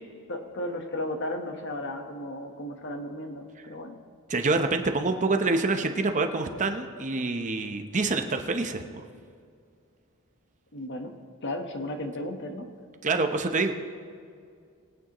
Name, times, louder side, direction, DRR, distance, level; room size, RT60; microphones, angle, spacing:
voice 1, 0.3-4.0 10.7-11.1 11.4-12.7, left 1 dB, 55° left, 5 dB, 1.2 m, -34 dB
voice 2, 4.3-9.0 13.0-13.7, right 3 dB, 35° right, 5 dB, 0.8 m, -26 dB
23.0 x 8.9 x 3.0 m, 2.3 s
head